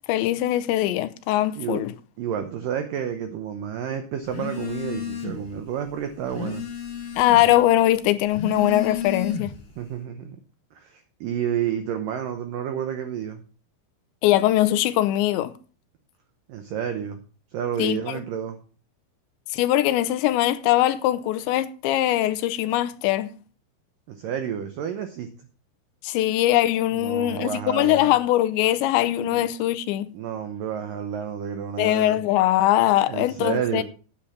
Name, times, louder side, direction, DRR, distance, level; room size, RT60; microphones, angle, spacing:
voice 1, 0.1-1.9 7.2-9.6 14.2-15.5 17.8-18.2 19.5-23.3 26.0-30.1 31.8-33.8, left 14 dB, 85° left, 2.9 m, -21 dB
voice 2, 2.2-6.6 9.8-10.4 10.7-13.4 16.5-17.2 17.5-18.6 24.1-25.3 26.9-28.1 29.3-29.4 30.1-32.2 33.1-33.8, right 9 dB, 80° right, 1.9 m, -30 dB
Telephone, 4.3-5.5 5.9-7.6 8.2-9.7, left 6 dB, 50° left, 2.1 m, -32 dB
8.9 x 8.6 x 5.6 m
omnidirectional pair, 5.2 m